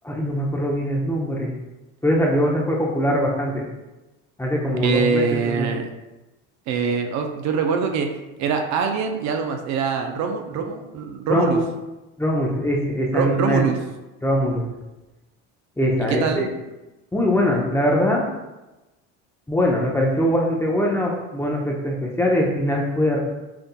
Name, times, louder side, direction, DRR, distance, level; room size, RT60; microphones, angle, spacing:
voice 1, 0.0-1.5 2.0-3.7 4.4-5.7 11.3-11.6 12.2-13.6 14.2-14.7 15.8-16.5 17.1-18.3 19.5-23.2, equal, 5° left, -2 dB, 0.7 m, -22 dB
voice 2, 4.8-5.9 6.7-8.1 8.4-11.6 13.1-13.8 16.1-16.5, right 5 dB, 55° right, 4 dB, 0.5 m, -23 dB
5.7 x 2.6 x 2.2 m, 1.0 s
supercardioid pair, 95°, 35 cm